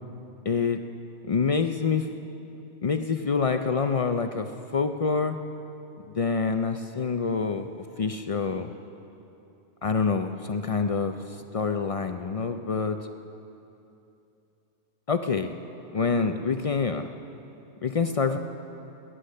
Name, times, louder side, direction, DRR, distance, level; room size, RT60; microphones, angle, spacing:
voice 1, 0.5-0.8 1.3-2.1 2.8-5.4 6.1-7.7 8.0-8.7 9.8-13.0 15.1-15.5 15.9-17.1 17.8-18.4, left 5 dB, 55° left, 7 dB, 0.3 m, -26 dB
20.0 x 10.0 x 6.5 m, 2.8 s
omnidirectional pair, 1.2 m